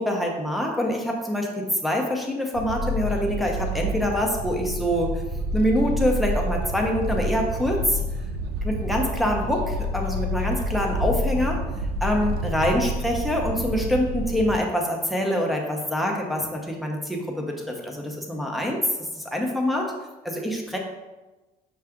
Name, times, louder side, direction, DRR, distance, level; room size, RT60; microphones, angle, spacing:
voice 1, 0.0-5.1 5.5-8.0 8.6-11.6 12.0-18.8 19.3-19.9 20.2-20.8, left 1 dB, ahead, 0 dB, 0.7 m, -25 dB
sound 1, 2.5-14.6, equal, 75° right, 0.5 m, -28 dB
5.7 x 2.4 x 3.6 m, 1.1 s
cardioid pair, 110°, 17 cm